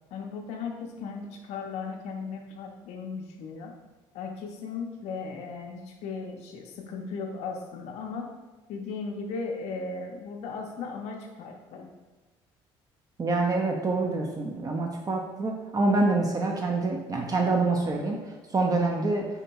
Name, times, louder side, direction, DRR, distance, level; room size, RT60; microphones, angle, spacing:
voice 1, 0.1-3.7 4.1-8.3 8.7-11.9, left 4 dB, 75° left, 2 dB, 0.4 m, -36 dB
voice 2, 13.2-18.2 18.5-19.3, right 3 dB, 35° right, 1 dB, 0.4 m, -26 dB
3.6 x 2.1 x 2.8 m, 1.2 s
supercardioid pair, 75°, 11 cm